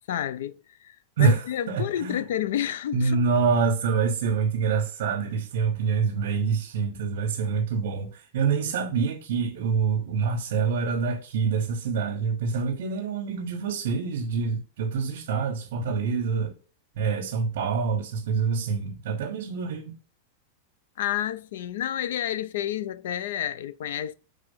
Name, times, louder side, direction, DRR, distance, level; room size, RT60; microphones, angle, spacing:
voice 1, 0.1-0.6 0.8-3.2 21.0-24.1, left 11 dB, 65° left, 0.5 m, -30 dB
voice 2, 1.2-2.2 2.9-16.5 17.0-20.0, right 5 dB, 60° right, 1.3 m, -26 dB
4.8 x 3.9 x 5.5 m
supercardioid pair, 175°, 0 cm